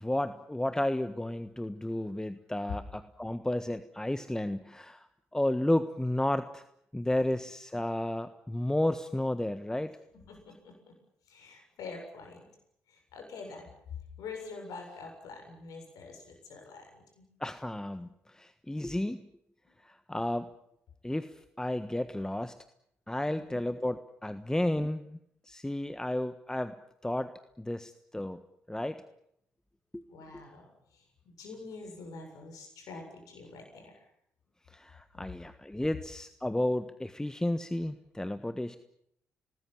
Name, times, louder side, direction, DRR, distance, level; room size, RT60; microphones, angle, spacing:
voice 1, 0.0-6.6 6.9-10.0 17.4-19.2 19.8-20.5 21.0-22.5 23.1-25.2 25.5-26.7 27.0-28.4 28.7-29.0 29.9-30.0 30.3-30.4 34.7-38.8, left 1 dB, 10° left, 11 dB, 1.4 m, -32 dB
voice 2, 10.3-10.9 11.3-12.5 12.9-13.7 14.2-17.2 23.2-23.7 30.1-30.7 30.9-33.9, left 4 dB, 60° left, 3 dB, 7.3 m, -46 dB
28.0 x 19.5 x 7.5 m, 0.73 s
figure-of-eight pair, 45°, 7 cm